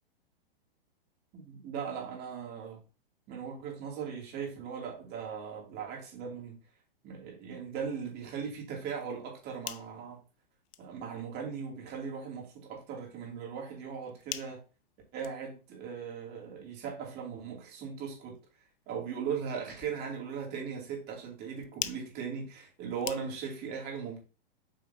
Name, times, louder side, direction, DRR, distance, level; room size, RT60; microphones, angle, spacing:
voice 1, 1.3-2.8 3.3-6.6 7.0-10.2 10.8-14.6 15.1-18.3 18.9-24.2, right 6 dB, 35° right, 2.8 m, -38 dB
sound 1, 9.3-23.7, left 14 dB, 35° left, 0.5 m, -48 dB
8.1 x 4.9 x 2.9 m
hypercardioid pair, 115°, 29 cm